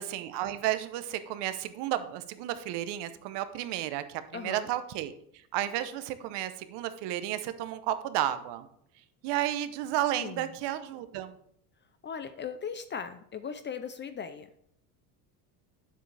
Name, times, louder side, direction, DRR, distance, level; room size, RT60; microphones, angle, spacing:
voice 1, 0.0-5.1 5.5-8.7 9.2-11.3, right 13 dB, 60° right, 11 dB, 0.9 m, -32 dB
voice 2, 4.3-4.7 10.2-10.5 12.0-14.6, left 7 dB, 25° left, 11 dB, 0.5 m, -38 dB
9.1 x 7.6 x 3.3 m, 0.68 s
supercardioid pair, 115°, 46 cm